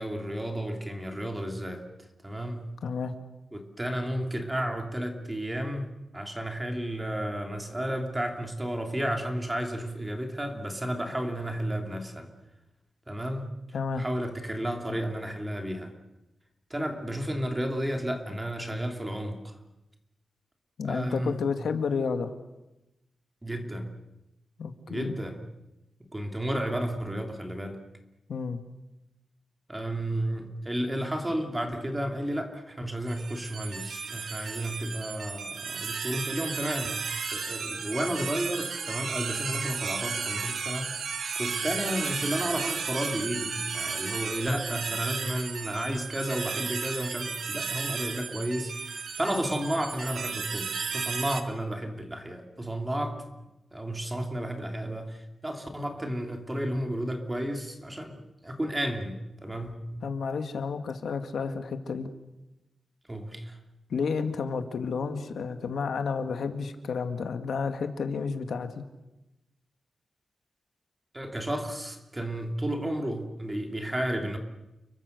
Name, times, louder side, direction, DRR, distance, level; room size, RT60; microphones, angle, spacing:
voice 1, 0.0-1.8 2.2-2.7 3.5-12.3 13.1-13.5 14.0-15.9 16.7-19.6 20.8-21.5 23.4-23.9 24.9-25.4 26.1-27.8 29.7-37.0 37.3-53.2 53.7-59.8 63.1-63.6 71.1-74.4, right 1 dB, 15° right, 4 dB, 2.8 m, -32 dB
voice 2, 2.8-3.1 13.7-14.0 20.8-22.3 24.6-25.2 28.3-28.6 60.0-62.1 63.9-68.8, left 5 dB, 90° left, 7 dB, 2.1 m, -31 dB
sound 1, 33.1-51.4, right 5 dB, 70° right, 1.8 m, -34 dB
30.0 x 23.0 x 6.7 m, 0.95 s
wide cardioid pair, 180°, 0 cm